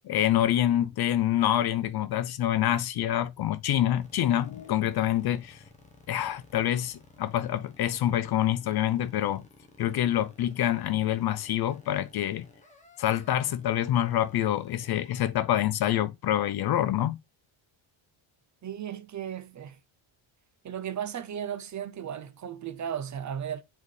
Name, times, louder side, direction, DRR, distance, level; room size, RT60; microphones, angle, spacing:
voice 1, 0.0-5.6 6.1-9.4 9.8-12.5 13.0-17.2, left 12 dB, 50° left, 0.5 m, -26 dB
sound 1, 4.0-15.2, left 3 dB, 15° left, 1.0 m, -55 dB
voice 2, 18.6-19.8 20.6-23.6, right 9 dB, 40° right, 0.5 m, -35 dB
7.4 x 4.0 x 3.2 m
cardioid pair, 175°, 48 cm